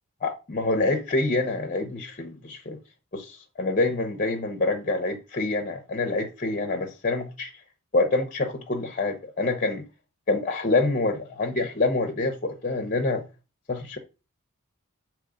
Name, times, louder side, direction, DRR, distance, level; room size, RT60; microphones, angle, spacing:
voice 1, 0.2-2.8 3.1-7.6 7.9-9.8 10.3-13.2 13.7-14.0, left 2 dB, 35° left, 0.8 m, -26 dB
7.5 x 3.1 x 5.0 m
head